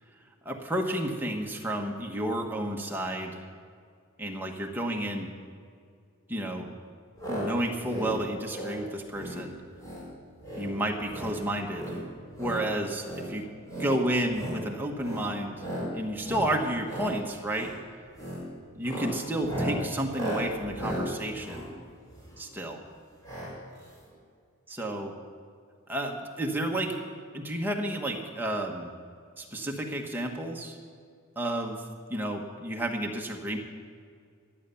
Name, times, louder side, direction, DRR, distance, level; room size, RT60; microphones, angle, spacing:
voice 1, 0.4-3.4 4.2-5.3 6.3-6.7 7.3-9.5 10.5-12.0 12.4-13.4 13.8-15.6 15.9-17.7 18.7-21.6 22.4-22.8 24.7-25.1 25.9-26.9 27.3-28.9 29.4-30.8 31.4-31.8 32.1-33.6, right 1 dB, 10° right, 1 dB, 1.2 m, -31 dB
sound 1, 7.2-7.5 7.8-8.1 8.5-8.8 9.1-9.4 9.8-10.1 10.4-10.7 11.0-11.3 11.7-12.6 13.0-13.3 13.6-13.9 14.3-14.6 15.0-15.3 15.6-15.9 16.2-16.5 16.8-17.1 17.5-17.8 18.1-18.4 18.8-22.5 23.2-23.5 23.8-23.9 24.1-24.2, equal, 15° left, 4.2 m, -35 dB
15.0 x 10.5 x 7.0 m, 2.2 s
head